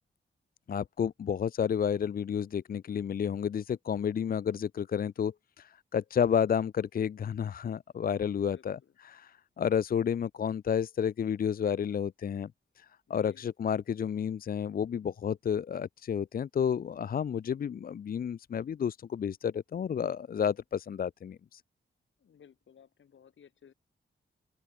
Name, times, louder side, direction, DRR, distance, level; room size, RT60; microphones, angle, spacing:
voice 1, 0.7-8.8 9.0-12.5 12.8-21.6, left 8 dB, 50° left, 0.5 m, -31 dB
voice 2, 8.3-9.0 13.1-13.5 22.2-23.7, left 8 dB, 90° left, 7.1 m, -58 dB
open air
wide cardioid pair, 150°, 19 cm